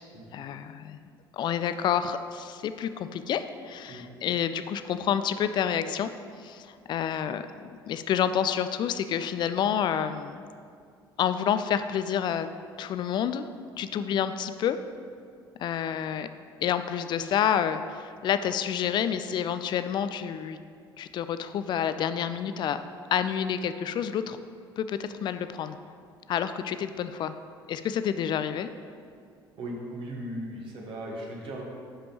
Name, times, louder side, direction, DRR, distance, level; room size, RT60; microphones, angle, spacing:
voice 1, 0.3-1.0 1.3-6.1 6.4-7.5 7.9-10.5 11.2-12.5 12.8-13.5 13.8-14.8 15.6-16.3 16.6-20.6 21.0-22.8 23.1-24.4 24.8-25.8 26.3-27.4 27.7-28.7, left 9 dB, 40° left, 11 dB, 0.4 m, -28 dB
voice 2, 29.6-31.6, right 1 dB, 45° right, -2 dB, 1.2 m, -37 dB
11.0 x 5.1 x 2.9 m, 2.2 s
figure-of-eight pair, 55°, 12 cm